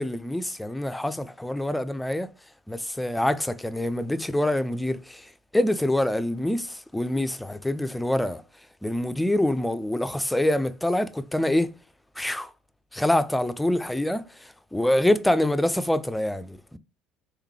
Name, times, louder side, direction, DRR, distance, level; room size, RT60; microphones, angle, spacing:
voice 1, 0.0-2.3 2.7-8.4 8.8-11.7 12.2-12.5 12.9-16.8, left 1 dB, 5° left, 0.4 m, -25 dB
3.6 x 3.2 x 3.1 m
hypercardioid pair, 70°, 0 cm